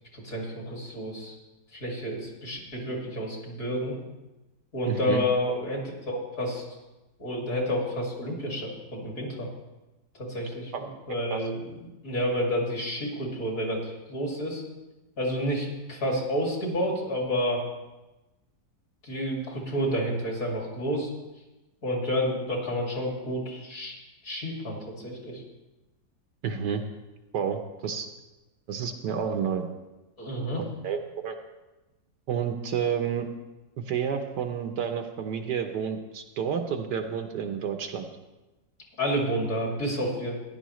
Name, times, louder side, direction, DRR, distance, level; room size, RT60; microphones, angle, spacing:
voice 1, 0.1-1.3 1.7-3.9 4.7-6.6 7.2-9.5 10.1-14.6 15.2-17.6 19.0-21.1 21.8-24.0 24.2-25.4 30.2-30.6 39.0-40.4, equal, 50° left, -1 dB, 2.7 m, -30 dB
voice 2, 4.9-5.2 10.7-10.8 11.3-11.4 26.4-26.8 27.3-28.1 28.7-29.7 30.6-31.4 32.3-33.3 33.9-38.1, right 7 dB, 70° right, 6 dB, 1.3 m, -30 dB
15.0 x 10.5 x 3.1 m, 1.1 s
omnidirectional pair, 2.0 m